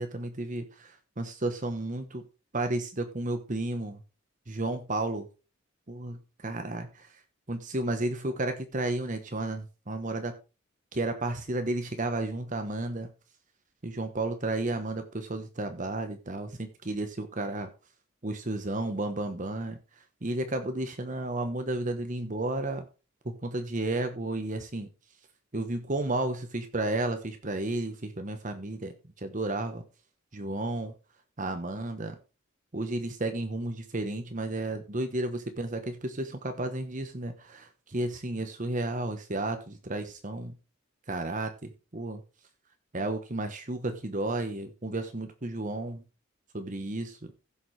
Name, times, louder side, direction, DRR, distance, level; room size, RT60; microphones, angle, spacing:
voice 1, 0.0-2.2 2.5-4.0 4.5-5.3 5.9-7.2 7.5-10.3 10.9-13.1 13.8-17.7 18.2-19.8 20.2-22.8 23.2-24.9 25.5-29.8 30.3-30.9 31.4-32.2 32.7-40.5 41.1-42.2 42.9-46.0 46.5-47.3, right 2 dB, 40° right, 7 dB, 1.1 m, -32 dB
16.0 x 7.0 x 3.3 m, 0.31 s
head